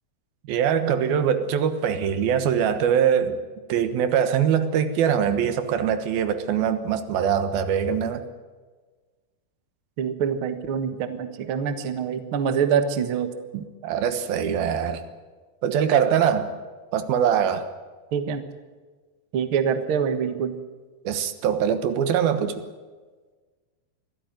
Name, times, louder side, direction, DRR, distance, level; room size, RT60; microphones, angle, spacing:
voice 1, 0.5-3.4 3.7-8.2 13.5-15.0 15.6-16.5 16.9-17.7 21.0-22.6, right 8 dB, 75° right, 10 dB, 3.1 m, -23 dB
voice 2, 10.0-13.3 18.1-18.4 19.3-20.6, right 7 dB, 55° right, 9 dB, 1.5 m, -25 dB
23.5 x 15.0 x 9.2 m, 1.4 s
omnidirectional pair, 4.4 m